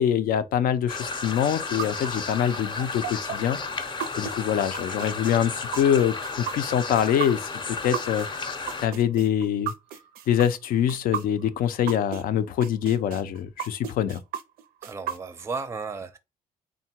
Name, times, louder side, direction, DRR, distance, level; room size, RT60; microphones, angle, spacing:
voice 1, 0.0-3.6 4.2-8.3 8.8-9.7 10.3-14.2, left 9 dB, 75° left, 0.5 m, -24 dB
sound 1, 0.9-8.9, left 4 dB, 30° left, 0.6 m, -33 dB
sound 2, 1.4-12.2 12.6-15.6, right 9 dB, 85° right, 0.5 m, -34 dB
voice 2, 14.8-16.2, right 4 dB, 20° right, 0.5 m, -34 dB
3.6 x 2.2 x 4.3 m
cardioid pair, 110°, 15 cm